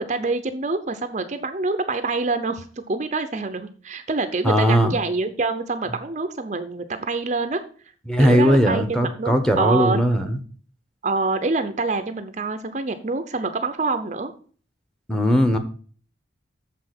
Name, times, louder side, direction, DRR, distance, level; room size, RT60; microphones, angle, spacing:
voice 1, 0.0-7.6 8.2-10.0 11.0-14.3, right 3 dB, 35° right, 9 dB, 0.7 m, -26 dB
voice 2, 4.4-5.0 8.1-10.4 15.1-15.6, equal, 5° left, 5 dB, 1.0 m, -18 dB
7.4 x 5.7 x 5.9 m, 0.42 s
head